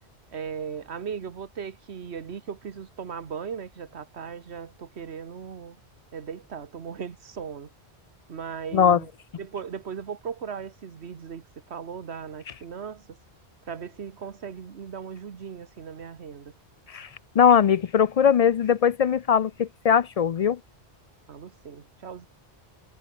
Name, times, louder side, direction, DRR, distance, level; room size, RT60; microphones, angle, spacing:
voice 1, 0.3-5.8 6.1-7.7 8.3-9.1 9.4-13.2 13.6-16.5 21.3-22.3, right 7 dB, 90° right, 1.5 m, -37 dB
voice 2, 17.4-20.6, left 7 dB, 55° left, 0.4 m, -20 dB
omnidirectional pair, 1.1 m